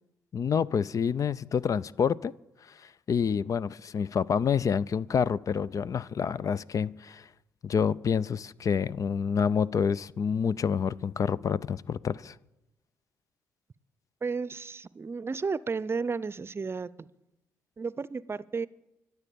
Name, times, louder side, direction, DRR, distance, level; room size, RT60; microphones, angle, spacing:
voice 1, 0.3-2.3 2.8-7.3 7.6-12.4, left 6 dB, 50° left, 0.5 m, -28 dB
voice 2, 14.2-17.1 17.8-18.7, right 4 dB, 35° right, 0.6 m, -33 dB
24.0 x 8.1 x 7.0 m
hypercardioid pair, 50°, 7 cm